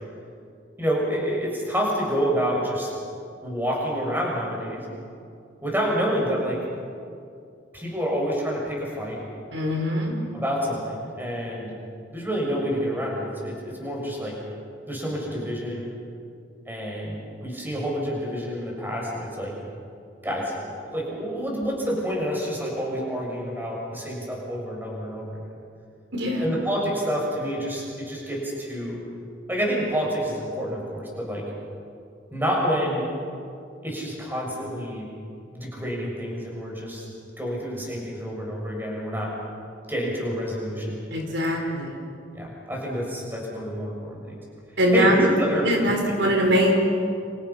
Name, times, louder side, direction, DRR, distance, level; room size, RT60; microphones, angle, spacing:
voice 1, 0.8-2.9 3.4-4.8 5.6-6.6 7.7-9.2 10.3-11.7 12.1-14.4 14.9-15.9 16.7-19.5 20.2-25.4 26.4-29.0 29.5-31.5 32.3-33.1 33.8-35.1 35.5-37.0 37.4-39.3 39.9-41.0 42.3-44.4 44.9-46.1, equal, 10° right, -3 dB, 6.9 m, -28 dB
voice 2, 9.5-10.1 26.1-26.4 41.1-42.0 44.8-45.3 45.6-46.7, equal, 70° right, 1 dB, 4.7 m, -22 dB
29.5 x 28.5 x 5.9 m, 2.4 s
head